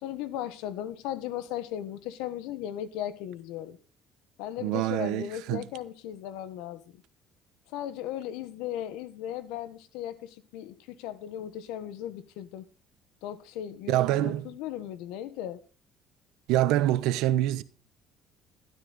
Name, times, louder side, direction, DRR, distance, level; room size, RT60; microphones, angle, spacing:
voice 1, 0.0-3.8 4.4-6.8 7.7-12.6 13.2-15.6, left 11 dB, 85° left, 1.4 m, -37 dB
voice 2, 4.6-5.7 13.9-14.5 16.5-17.6, right 14 dB, 80° right, 1.0 m, -26 dB
12.5 x 12.0 x 4.1 m
cardioid pair, 95°, 0 cm